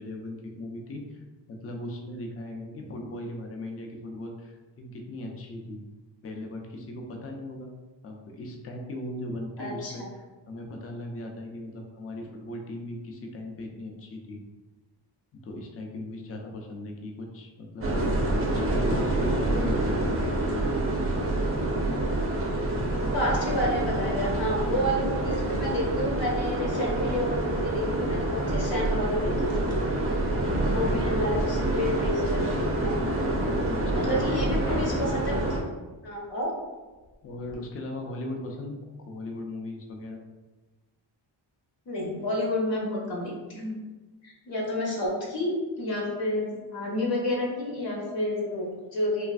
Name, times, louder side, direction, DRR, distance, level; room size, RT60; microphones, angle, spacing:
voice 1, 0.0-5.8 6.2-7.7 8.0-14.4 15.3-17.9 18.2-20.2 30.2-31.3 33.0-33.1 33.4-34.4 37.2-40.2, left 1 dB, 35° left, 2 dB, 0.4 m, -38 dB
voice 2, 9.6-10.1 23.1-29.7 30.7-32.4 32.8-32.9 33.9-35.6 36.0-36.5 41.9-43.7 44.2-49.3, left 1 dB, 75° left, -3 dB, 0.8 m, -30 dB
sound 1, 17.8-35.6, right 1 dB, 30° right, 0.4 m, -27 dB
sound 2, 28.7-30.2 30.5-31.5 31.9-32.7 33.2-33.3 34.1-35.5 36.4-36.5 36.9-37.5, left 1 dB, 10° left, 0.7 m, -43 dB
3.2 x 2.4 x 2.4 m, 1.2 s
wide cardioid pair, 125°, 45 cm